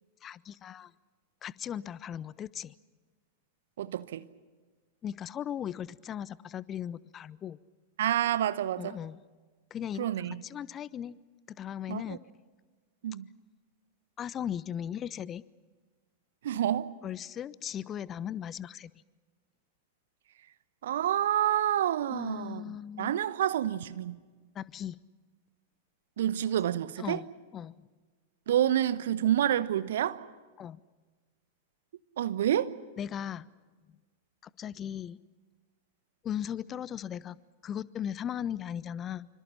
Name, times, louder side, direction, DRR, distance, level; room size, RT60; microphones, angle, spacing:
voice 1, 0.2-0.9 1.4-2.7 5.0-7.6 8.8-9.2 9.7-11.2 11.6-12.2 14.2-15.4 17.0-18.9 22.1-23.2 24.6-25.0 27.0-27.2 27.5-27.9 30.6-30.8 33.0-33.5 34.6-35.2 36.2-39.3, left 9 dB, 30° left, 0.6 m, -37 dB
voice 2, 3.8-4.3 8.0-9.0 10.0-10.4 11.9-12.2 13.0-13.3 16.4-16.9 20.8-24.2 26.2-27.2 28.5-30.2 32.2-32.7, right 11 dB, 60° right, 1.0 m, -28 dB
27.0 x 25.5 x 5.9 m
figure-of-eight pair, 95°, 0 cm